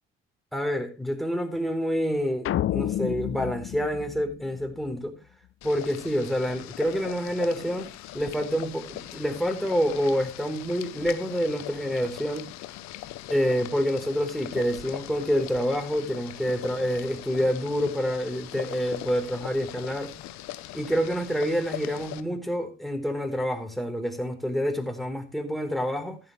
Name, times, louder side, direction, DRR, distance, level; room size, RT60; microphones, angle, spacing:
voice 1, 0.5-5.1 5.6-12.5 13.3-20.1 20.7-26.2, equal, ahead, 4.0 m, -27 dB
sound 1, 2.4-4.9, left 12 dB, 45° left, 0.6 m, -30 dB
Boiling, 5.6-22.2, left 15 dB, 70° left, 1.0 m, -40 dB
14.5 x 11.0 x 3.3 m
hypercardioid pair, 55°, 29 cm